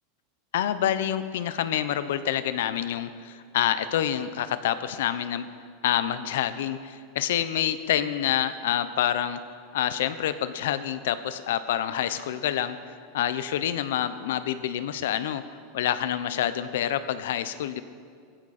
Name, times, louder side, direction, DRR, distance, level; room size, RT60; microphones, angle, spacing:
voice 1, 0.5-5.5 5.8-9.4 9.7-15.4 15.7-17.8, left 10 dB, 80° left, 12 dB, 0.9 m, -27 dB
18.5 x 15.0 x 4.4 m, 2.2 s
supercardioid pair, 155°, 0 cm